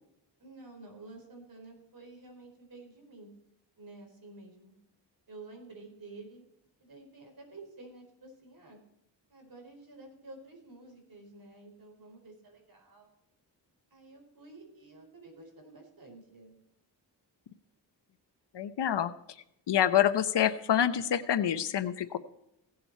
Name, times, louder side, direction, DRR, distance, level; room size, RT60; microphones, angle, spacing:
voice 1, 0.4-3.3 3.8-4.7 5.3-6.4 6.8-8.8 9.3-13.1 13.9-16.6, right 2 dB, 55° right, 2 dB, 4.8 m, -51 dB
voice 2, 18.5-19.1 19.7-22.2, left 10 dB, 75° left, 11 dB, 0.9 m, -27 dB
17.0 x 7.7 x 4.4 m, 0.80 s
wide cardioid pair, 95°, 42 cm